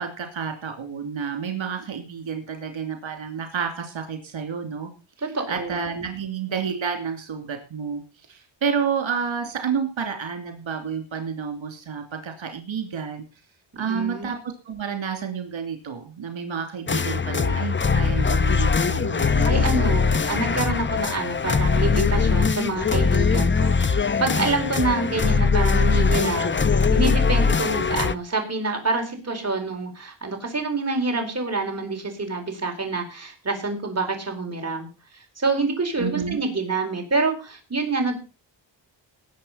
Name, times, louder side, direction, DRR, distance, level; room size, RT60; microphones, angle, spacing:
voice 1, 0.0-4.9 5.5-8.0 8.3-13.2 13.8-19.6 36.0-36.4, right 6 dB, 85° right, 5 dB, 2.9 m, -30 dB
voice 2, 5.2-5.8 13.7-14.3 19.4-26.6 26.9-34.9 35.4-38.1, right 3 dB, 35° right, 3 dB, 4.4 m, -27 dB
sound 1, 16.9-28.1, left 5 dB, 25° left, 0.7 m, -21 dB
19.0 x 7.8 x 5.7 m, 0.33 s
wide cardioid pair, 145°, 45 cm